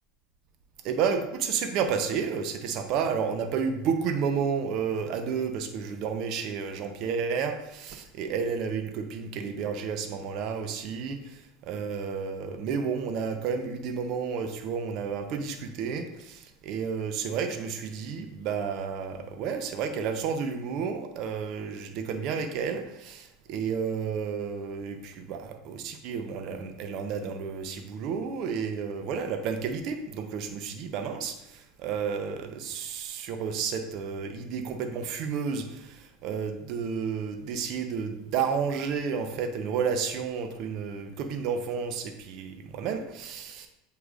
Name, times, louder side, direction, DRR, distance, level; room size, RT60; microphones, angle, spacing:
voice 1, 0.8-11.2 11.7-43.7, right 6 dB, 55° right, 7 dB, 0.8 m, -31 dB
7.9 x 4.9 x 2.5 m, 0.85 s
hypercardioid pair, 80°, 0 cm